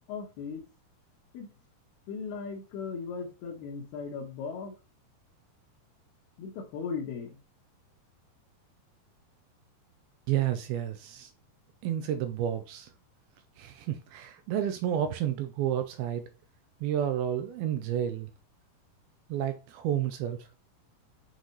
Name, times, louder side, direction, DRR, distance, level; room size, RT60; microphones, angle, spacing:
voice 1, 0.1-0.6 1.3-1.5 2.1-4.7 6.4-7.4, left 5 dB, 75° left, 3.0 m, -37 dB
voice 2, 10.3-11.3 11.8-12.9 13.6-16.2 16.8-18.3 19.3-20.5, right 10 dB, 80° right, 2.2 m, -30 dB
8.2 x 4.0 x 3.0 m
omnidirectional pair, 4.8 m